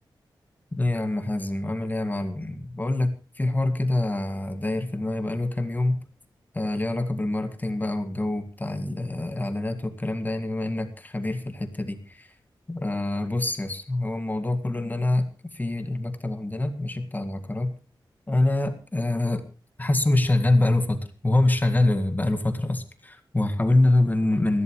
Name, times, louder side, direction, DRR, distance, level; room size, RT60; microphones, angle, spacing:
voice 1, 0.7-6.0 6.5-12.3 12.7-17.8 18.3-19.4 19.8-24.6, left 2 dB, 20° left, 8 dB, 2.0 m, -25 dB
21.0 x 15.0 x 3.1 m, 0.32 s
wide cardioid pair, 110°, 8 cm